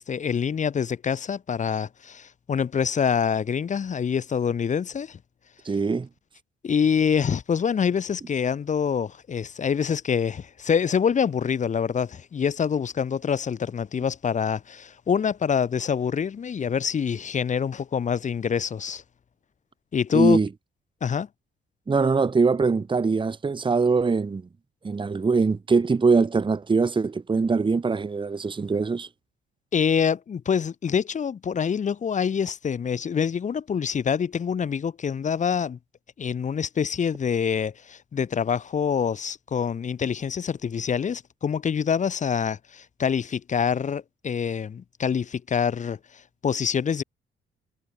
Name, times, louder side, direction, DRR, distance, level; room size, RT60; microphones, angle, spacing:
voice 1, 0.0-5.2 6.6-19.0 19.9-20.4 21.0-21.3 29.7-35.8 36.2-46.0 46.4-47.0, left 7 dB, 40° left, 0.8 m, -25 dB
voice 2, 5.6-6.1 20.1-20.5 21.9-24.4 24.8-29.1, right 4 dB, 25° right, 1.2 m, -22 dB
cardioid pair, 90°, 20 cm